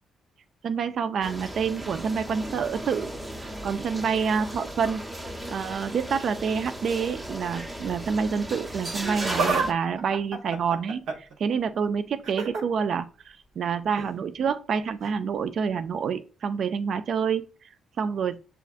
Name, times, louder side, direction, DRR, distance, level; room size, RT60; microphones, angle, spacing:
voice 1, 0.6-3.1 3.4-18.4, right 6 dB, 60° right, 10 dB, 0.4 m, -28 dB
sound 1, 1.2-9.7, right 1 dB, 20° right, 0.7 m, -36 dB
Laughter, 8.9-9.7 10.0-11.3 12.2-12.6 13.9-14.1 15.0-15.1, right 3 dB, 75° right, 0.9 m, -29 dB
6.6 x 2.4 x 2.4 m, 0.34 s
cardioid pair, 90°, 0 cm